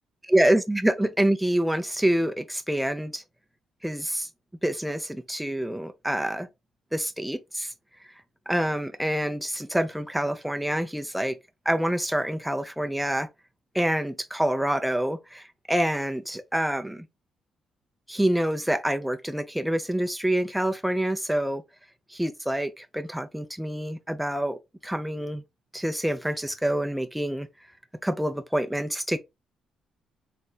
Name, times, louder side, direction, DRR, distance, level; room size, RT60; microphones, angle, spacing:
voice 1, 0.3-3.2 3.8-4.3 4.6-6.5 6.9-7.7 8.5-11.4 11.7-13.3 13.7-17.1 18.1-21.6 22.1-25.4 25.7-27.5 28.0-29.2, right 1 dB, 5° right, 0.4 m, -26 dB
3.6 x 3.2 x 2.2 m
cardioid pair, 90°, 0 cm